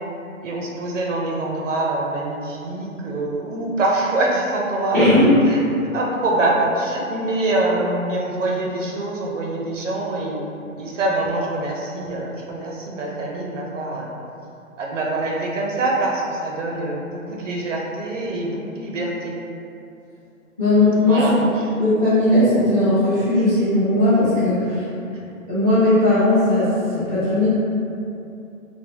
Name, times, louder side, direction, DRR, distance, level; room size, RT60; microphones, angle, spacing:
voice 1, 0.4-5.1 5.9-10.4 10.8-14.1 14.8-19.3 21.1-21.3, right 2 dB, 60° right, -2 dB, 0.6 m, -24 dB
voice 2, 4.9-5.3 20.6-21.5 21.8-24.9 25.5-27.5, left 1 dB, 15° left, -14 dB, 0.8 m, -17 dB
3.7 x 2.2 x 2.9 m, 2.7 s
hypercardioid pair, 160°, 43 cm